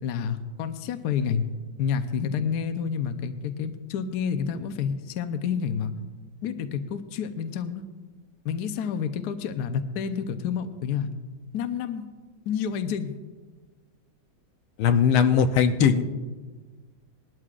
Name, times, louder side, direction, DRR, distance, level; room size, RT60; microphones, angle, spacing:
voice 1, 0.0-1.4 1.8-5.9 6.4-7.8 8.4-11.1 11.5-12.1 12.5-13.1, left 7 dB, 65° left, 8 dB, 1.1 m, -29 dB
voice 2, 14.8-16.0, left 7 dB, 85° left, 7 dB, 1.6 m, -19 dB
20.0 x 12.5 x 2.5 m, 1.4 s
omnidirectional pair, 2.2 m